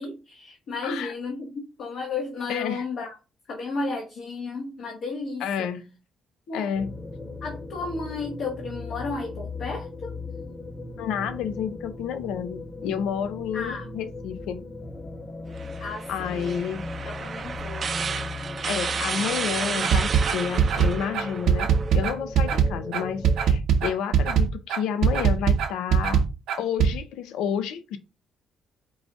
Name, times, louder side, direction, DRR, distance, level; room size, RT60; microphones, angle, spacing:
voice 1, 0.0-3.1 3.5-5.7 6.5-6.7 7.4-10.1 13.5-13.9 15.8-16.6 17.0-17.9, left 3 dB, 70° left, 1.2 m, -33 dB
voice 2, 0.8-1.1 2.5-2.8 5.4-5.9 6.5-6.9 11.0-14.7 16.1-16.8 18.0-18.1 18.7-26.2 26.6-28.0, left 8 dB, 90° left, 0.5 m, -30 dB
sound 1, 6.7-23.6, left 2 dB, 25° left, 1.1 m, -38 dB
sound 2, 15.6-22.1, right 5 dB, 45° right, 0.4 m, -32 dB
sound 3, 19.8-26.9, right 7 dB, 85° right, 0.8 m, -21 dB
4.8 x 2.6 x 3.4 m
cardioid pair, 90°, 0 cm